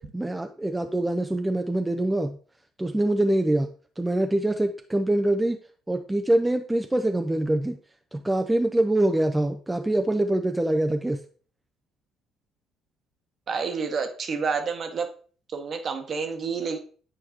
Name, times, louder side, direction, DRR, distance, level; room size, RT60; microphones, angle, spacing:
voice 1, 0.0-2.4 2.8-3.7 4.0-5.6 5.9-7.8 8.1-11.2, right 1 dB, 10° right, 6 dB, 0.5 m, -24 dB
voice 2, 13.5-15.1 15.5-16.8, right 5 dB, 45° right, 6 dB, 1.1 m, -29 dB
8.9 x 4.5 x 2.9 m, 0.42 s
hypercardioid pair, 50°, 0 cm